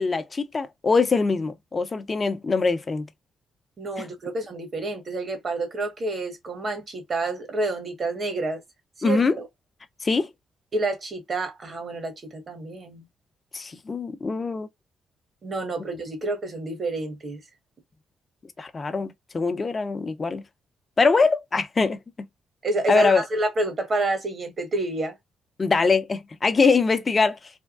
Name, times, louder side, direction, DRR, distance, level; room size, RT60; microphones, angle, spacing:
voice 1, 0.0-3.1 4.0-4.1 9.0-9.4 10.0-10.3 13.5-14.7 18.6-20.4 21.0-22.0 22.9-23.2 25.6-27.4, left 4 dB, 40° left, 0.7 m, -23 dB
voice 2, 3.8-8.6 9.0-9.5 10.7-13.0 15.4-17.4 22.6-25.2, right 2 dB, 45° right, 1.2 m, -29 dB
3.5 x 2.2 x 2.4 m
supercardioid pair, 55°, 0 cm